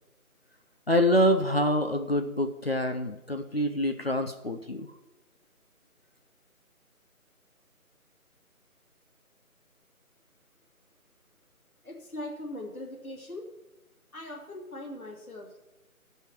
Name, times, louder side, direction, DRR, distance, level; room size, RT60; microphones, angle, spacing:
voice 1, 0.9-4.9, equal, 45° left, 4 dB, 0.6 m, -26 dB
voice 2, 11.8-13.5 14.1-15.6, left 1 dB, 70° left, -1 dB, 2.7 m, -40 dB
16.0 x 5.6 x 4.5 m, 0.99 s
figure-of-eight pair, 160°, 44 cm